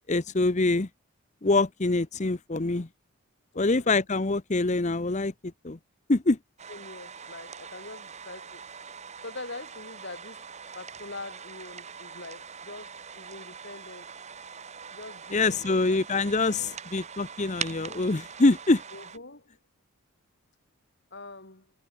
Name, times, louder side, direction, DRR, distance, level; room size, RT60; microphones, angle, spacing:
voice 1, 0.1-0.9 1.4-2.9 3.6-5.8 6.1-6.4 15.3-18.8, left 2 dB, 30° left, 0.7 m, -25 dB
voice 2, 3.5-4.0 6.7-8.7 9.2-10.5 10.7-14.1 14.9-16.8 18.9-19.6 21.1-21.7, left 2 dB, 50° left, 3.1 m, -44 dB
sound 1, 6.6-19.2, right 6 dB, 30° right, 1.5 m, -43 dB
head